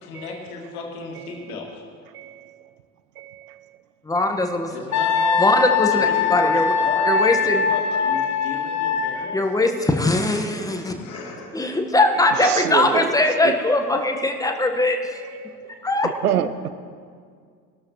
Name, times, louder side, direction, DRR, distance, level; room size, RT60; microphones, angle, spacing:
voice 1, 0.0-1.8 4.7-5.5 5.9-9.9 11.0-11.5, left 4 dB, 70° left, 1 dB, 2.1 m, -34 dB
voice 2, 2.1-2.5 3.2-3.6 8.3-8.4 9.2-9.4 12.3-13.1 13.4-13.5 15.4-15.6 16.0-16.7, right 9 dB, 75° right, 13 dB, 0.7 m, -27 dB
voice 3, 4.1-4.7 5.4-6.7 7.1-7.6 9.3-10.9 11.5-15.0 15.8-16.1, left 2 dB, 10° left, 4 dB, 1.3 m, -21 dB
Wind instrument woodwind instrument, 4.9-9.1, left 5 dB, 35° left, 1.2 m, -21 dB
20.0 x 13.0 x 3.1 m, 2.1 s
figure-of-eight pair, 60°, 46 cm